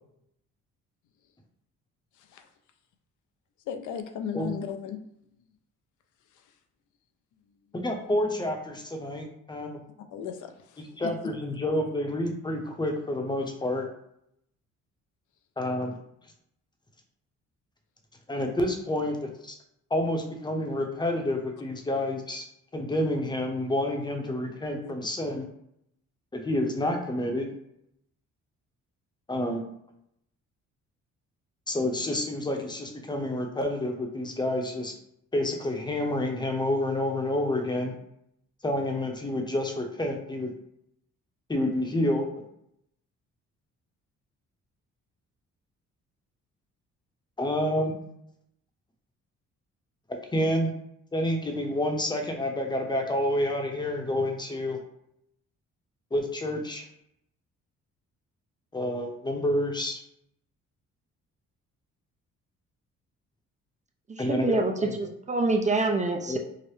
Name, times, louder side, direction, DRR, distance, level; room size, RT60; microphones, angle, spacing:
voice 1, 3.7-5.0 10.1-11.3 24.8-24.9, left 8 dB, 80° left, 7 dB, 0.5 m, -36 dB
voice 2, 7.7-9.8 10.8-13.9 15.6-16.0 18.3-19.6 19.9-22.4 22.7-25.5 26.3-27.5 29.3-29.7 31.7-34.9 35.3-37.9 38.6-40.5 41.5-42.3 47.4-48.0 50.3-50.7 51.1-54.8 56.1-56.8 58.7-60.0 64.2-64.9 66.3-66.4, left 1 dB, 15° left, 2 dB, 0.7 m, -29 dB
voice 3, 64.1-66.4, right 3 dB, 25° right, 3 dB, 0.4 m, -26 dB
4.8 x 2.0 x 3.1 m, 0.76 s
cardioid pair, 90°, 30 cm